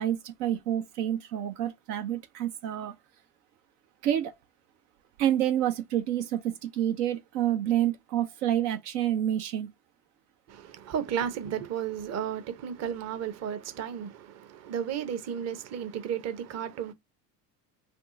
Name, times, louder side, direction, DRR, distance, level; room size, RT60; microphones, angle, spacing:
voice 1, 0.0-2.9 4.0-4.3 5.2-9.7, right 11 dB, 70° right, 0.6 m, -28 dB
voice 2, 10.5-16.9, right 8 dB, 35° right, 0.7 m, -33 dB
3.5 x 2.4 x 2.5 m
hypercardioid pair, 70°, 48 cm